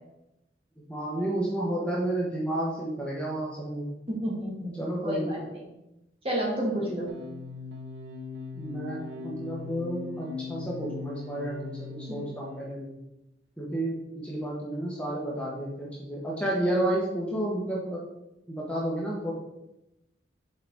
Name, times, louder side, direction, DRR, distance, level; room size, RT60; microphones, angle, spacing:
voice 1, 0.9-3.9 4.8-5.4 8.5-12.9 13.6-18.0 18.5-19.3, right 1 dB, 5° left, -5 dB, 1.0 m, -31 dB
voice 2, 4.2-4.7 5.0-5.6 6.2-7.1, equal, 30° right, -3 dB, 1.7 m, -30 dB
sound 1, 7.1-12.8, left 4 dB, 80° right, 0.8 m, -40 dB
6.5 x 4.8 x 3.5 m, 0.90 s
head